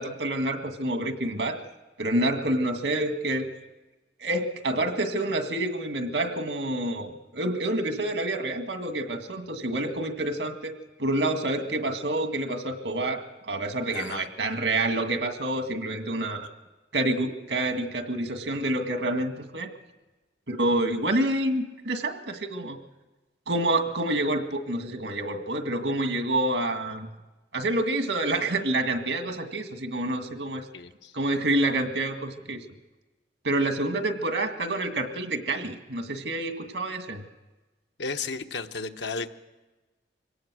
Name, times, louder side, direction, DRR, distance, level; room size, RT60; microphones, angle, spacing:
voice 1, 0.0-1.6 2.0-3.5 4.2-10.7 11.0-16.5 16.9-19.7 20.5-22.8 23.5-27.1 27.5-30.6 31.1-32.7 33.4-37.2, right 1 dB, 80° right, 6 dB, 2.0 m, -28 dB
voice 2, 13.9-14.3 30.7-31.1 38.0-39.3, left 4 dB, 75° left, 7 dB, 1.1 m, -34 dB
24.0 x 18.0 x 6.3 m, 1.2 s
head